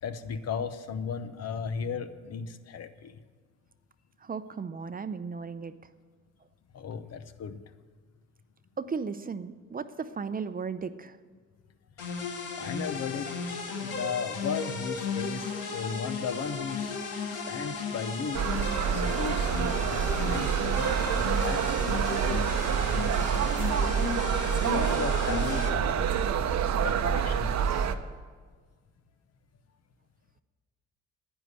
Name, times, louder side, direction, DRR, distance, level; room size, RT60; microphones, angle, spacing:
voice 1, 0.0-3.1 6.7-7.6 12.6-17.0 17.3-18.5 18.9-23.7 24.7-26.4 26.8-27.9, left 6 dB, 55° left, 11 dB, 0.9 m, -36 dB
voice 2, 4.2-5.7 8.8-11.2, right 5 dB, 30° right, 12 dB, 0.6 m, -35 dB
sound 1, 12.0-25.7, left 4 dB, 90° left, 1.8 m, -35 dB
sound 2, 18.3-28.0, right 8 dB, 65° right, 0.8 m, -27 dB
10.0 x 9.9 x 8.1 m, 1.5 s
cardioid pair, 90°, 30 cm